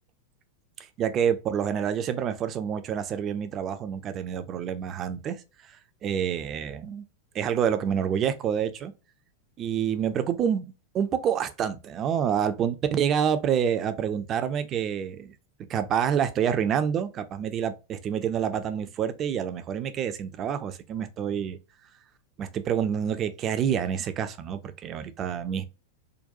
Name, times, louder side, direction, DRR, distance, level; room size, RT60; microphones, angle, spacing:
voice 1, 1.0-5.4 6.0-7.0 7.3-8.9 9.6-15.3 15.7-21.6 22.4-25.6, right 8 dB, 30° right, 0.4 m, -27 dB
3.8 x 2.2 x 2.5 m
figure-of-eight pair, 90°, 0 cm